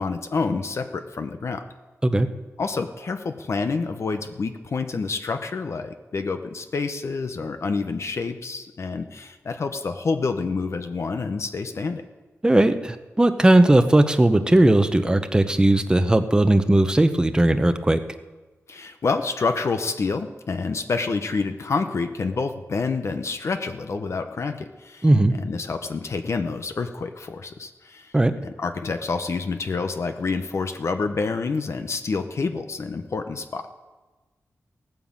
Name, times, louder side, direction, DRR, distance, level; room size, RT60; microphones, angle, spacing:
voice 1, 0.0-1.6 2.6-12.0 18.7-28.1 28.4-33.7, left 4 dB, 60° left, 7 dB, 0.9 m, -28 dB
voice 2, 12.4-18.0 25.0-25.3 28.1-28.3, right 1 dB, 15° right, 8 dB, 0.8 m, -18 dB
16.5 x 9.2 x 7.4 m, 1.2 s
wide cardioid pair, 95°, 5 cm